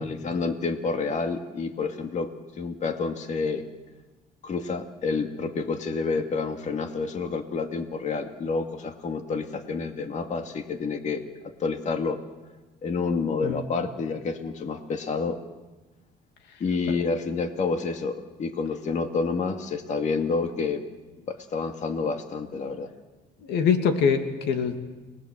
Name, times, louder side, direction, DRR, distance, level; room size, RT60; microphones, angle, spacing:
voice 1, 0.0-2.3 2.6-3.6 4.4-12.2 12.8-15.4 16.6-20.8 21.3-22.9, left 4 dB, 45° left, 6 dB, 2.2 m, -29 dB
voice 2, 23.4-24.8, left 6 dB, 85° left, 6 dB, 2.6 m, -24 dB
29.5 x 20.5 x 7.7 m, 1.2 s
cardioid pair, 110°, 17 cm